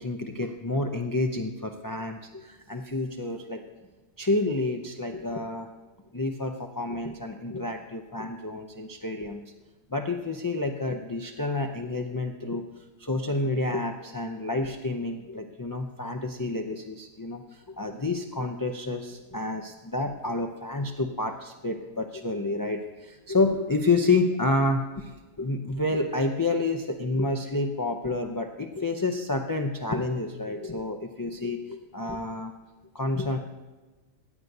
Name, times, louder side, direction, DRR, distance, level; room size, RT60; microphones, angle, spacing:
voice 1, 0.0-3.6 4.2-5.7 6.1-9.4 9.9-12.6 13.0-32.5 32.9-33.4, left 2 dB, 35° left, 3 dB, 0.3 m, -29 dB
15.5 x 9.0 x 2.7 m, 1.2 s
omnidirectional pair, 1.3 m